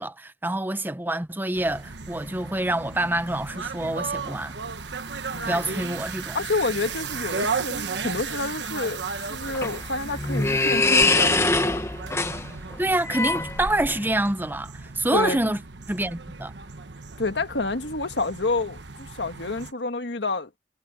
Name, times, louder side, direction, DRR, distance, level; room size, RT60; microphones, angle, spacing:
voice 1, 0.0-4.5 5.5-6.4 12.8-15.6 15.9-16.5, right 1 dB, 10° right, 0.9 m, -26 dB
sound 1, 1.5-19.7, right 5 dB, 70° right, 1.3 m, -35 dB
voice 2, 5.3-5.8 6.3-9.0 9.3-11.8 15.1-15.4 17.2-20.6, left 3 dB, 70° left, 1.6 m, -29 dB
sound 2, 9.2-14.1, left 3 dB, 15° left, 1.2 m, -24 dB
head